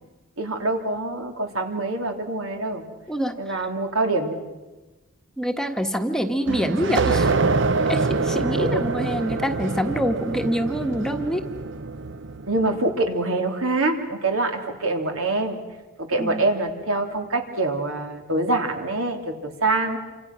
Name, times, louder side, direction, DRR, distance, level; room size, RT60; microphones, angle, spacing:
voice 1, 0.4-2.8 3.4-4.4 8.5-8.9 12.5-15.6 16.0-20.0, right 2 dB, 80° right, 4 dB, 3.3 m, -25 dB
voice 2, 3.1-3.6 5.4-7.4 7.9-11.5 16.2-16.5, equal, 5° left, 5 dB, 1.2 m, -26 dB
sound 1, 6.5-12.8, right 3 dB, 60° right, 0.7 m, -25 dB
28.5 x 26.0 x 6.2 m, 1.1 s
head